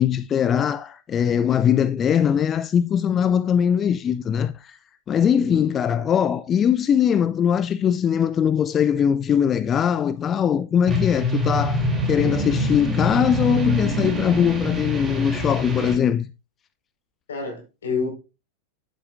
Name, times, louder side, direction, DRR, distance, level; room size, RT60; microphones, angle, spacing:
voice 1, 0.0-4.8 5.1-16.3, left 8 dB, 25° left, 0.4 m, -21 dB
sound 1, 10.9-15.9, left 1 dB, 15° right, 3.1 m, -25 dB
voice 2, 17.3-18.1, left 4 dB, 65° left, 4.8 m, -28 dB
10.0 x 9.1 x 2.6 m
figure-of-eight pair, 90°, 0 cm